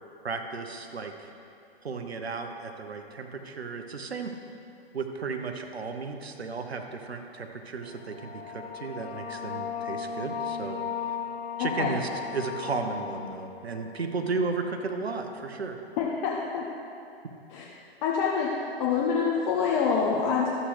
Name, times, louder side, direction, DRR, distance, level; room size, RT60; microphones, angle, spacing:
voice 1, 0.2-1.3 1.8-4.3 4.9-10.8 11.6-15.8, right 4 dB, 85° right, 5 dB, 1.0 m, -34 dB
sound 1, 7.9-15.2, left 7 dB, 80° left, 0.7 m, -37 dB
voice 2, 11.6-12.0 16.0-16.6 17.5-17.6 18.0-18.5 18.8-20.5, left 6 dB, 30° left, -3 dB, 0.9 m, -26 dB
12.5 x 7.6 x 3.3 m, 2.7 s
hypercardioid pair, 130°, 31 cm